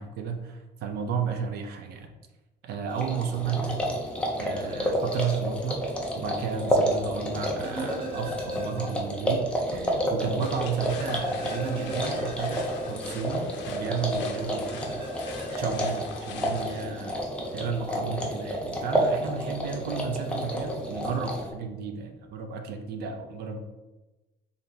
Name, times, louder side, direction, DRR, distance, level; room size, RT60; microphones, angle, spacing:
voice 1, 0.0-2.1 2.6-3.8 4.4-5.8 6.2-15.1 15.6-17.2 17.5-23.6, right 6 dB, 60° right, 5 dB, 0.4 m, -33 dB
sound 1, 2.9-21.5, equal, 5° left, 0.4 m, -30 dB
sound 2, 7.6-9.3 9.6-9.7 10.9-13.7 14.9-15.6, right 1 dB, 30° right, 0.8 m, -38 dB
sound 3, 10.4-16.8, left 5 dB, 80° left, 0.5 m, -43 dB
3.8 x 3.4 x 2.7 m, 1.1 s
cardioid pair, 175°, 19 cm